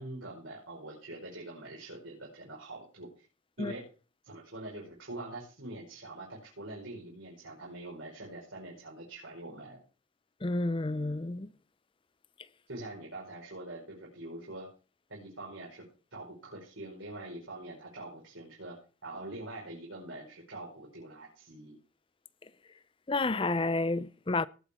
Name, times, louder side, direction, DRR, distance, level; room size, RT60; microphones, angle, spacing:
voice 1, 0.0-3.2 3.6-3.9 4.2-9.8 12.7-14.7 15.1-18.8 19.0-21.8, right 2 dB, 75° right, 5.0 m, -44 dB
voice 2, 10.4-11.5 23.1-24.5, left 2 dB, 25° left, 0.5 m, -30 dB
19.0 x 7.9 x 4.4 m
head